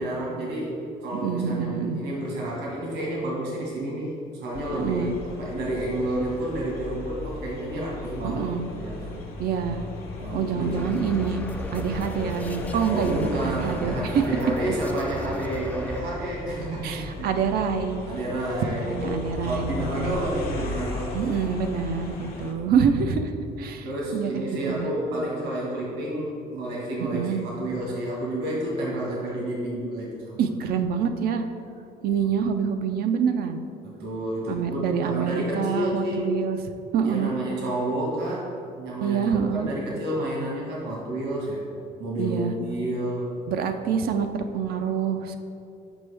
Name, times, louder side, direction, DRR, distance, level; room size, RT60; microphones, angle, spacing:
voice 1, 0.0-8.4 8.8-9.3 10.2-10.8 12.8-17.3 18.1-21.3 22.5-22.6 23.8-30.4 33.8-36.2 37.0-41.6 42.0-43.3, right 1 dB, 80° right, -4 dB, 1.4 m, -30 dB
voice 2, 1.1-2.0 4.7-5.1 8.2-8.6 9.4-9.8 10.3-11.4 11.7-14.2 16.8-18.0 18.7-20.2 21.1-23.9 24.1-24.9 27.0-27.5 30.4-31.4 32.0-33.6 34.5-36.6 36.9-37.3 39.0-39.7 42.2-42.5 43.5-45.4, right 6 dB, 65° right, 7 dB, 0.4 m, -26 dB
sound 1, 4.5-22.5, left 2 dB, 60° left, 1.0 m, -37 dB
sound 2, 10.8-16.0, left 1 dB, 10° left, 0.3 m, -35 dB
6.1 x 5.2 x 3.3 m, 2.6 s
cardioid pair, 110°, 17 cm